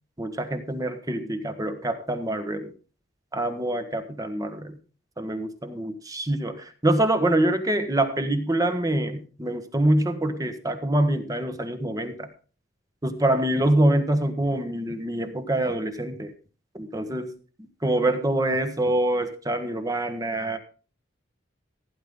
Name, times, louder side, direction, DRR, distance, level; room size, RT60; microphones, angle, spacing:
voice 1, 0.2-2.7 3.3-4.8 5.2-12.3 13.0-16.3 16.7-17.3 17.8-20.6, right 1 dB, 15° right, 8 dB, 1.3 m, -25 dB
15.5 x 10.0 x 3.8 m, 0.37 s
head